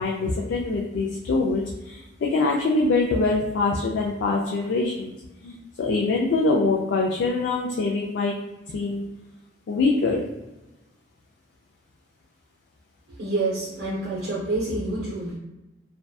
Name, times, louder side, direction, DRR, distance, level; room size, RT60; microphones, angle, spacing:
voice 1, 0.0-5.1 5.4-8.3 8.7-9.0 9.7-10.3, left 3 dB, 80° left, -1 dB, 0.3 m, -24 dB
voice 2, 13.2-15.4, right 2 dB, 65° right, -6 dB, 0.6 m, -27 dB
2.6 x 2.2 x 2.3 m, 1.0 s
head